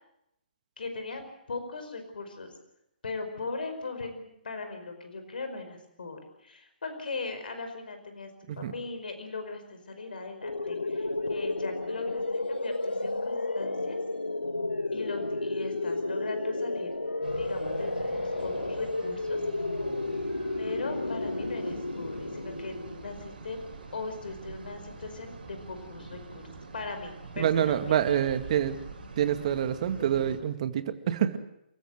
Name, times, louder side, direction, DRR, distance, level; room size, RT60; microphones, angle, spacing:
voice 1, 0.8-1.2 1.5-2.5 3.0-8.3 8.6-14.0 14.9-16.9 17.3-19.4 20.6-23.6 23.9-26.4 26.7-27.9, left 3 dB, 65° left, 7 dB, 5.0 m, -39 dB
sound 1, 10.4-23.2, left 2 dB, 90° left, 1.5 m, -32 dB
sound 2, 17.2-30.4, right 3 dB, 60° right, 6.8 m, -45 dB
voice 2, 27.4-28.8 29.2-31.4, right 10 dB, 45° right, 10 dB, 2.0 m, -27 dB
29.0 x 14.5 x 7.9 m, 0.80 s
figure-of-eight pair, 135°, 5 cm